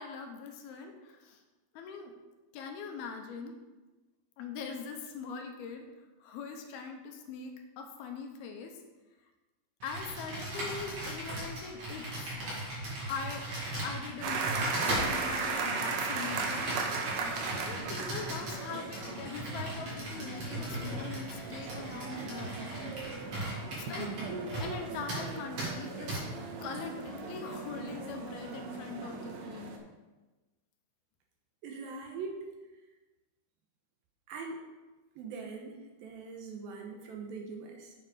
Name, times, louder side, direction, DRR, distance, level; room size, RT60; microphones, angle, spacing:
voice 1, 0.0-1.4 1.7-2.1 2.5-3.6 4.4-5.9 6.2-8.8 9.8-12.4 13.1-13.5 13.8-16.8 17.6-22.6 23.7-24.1 24.6-26.2 26.6-29.8, left 5 dB, 75° left, 4 dB, 2.7 m, -42 dB
Computer keyboard, 9.8-24.8 25.1-25.3 25.6-25.7 26.1-26.2, right 1 dB, 45° right, 2.9 m, -38 dB
sound 1, 14.2-29.8, right 4 dB, 90° right, 3.2 m, -37 dB
voice 2, 31.6-32.5 34.3-34.6 35.2-37.9, right 4 dB, 70° right, 2 dB, 2.5 m, -42 dB
7.6 x 7.1 x 5.0 m, 1.2 s
omnidirectional pair, 4.7 m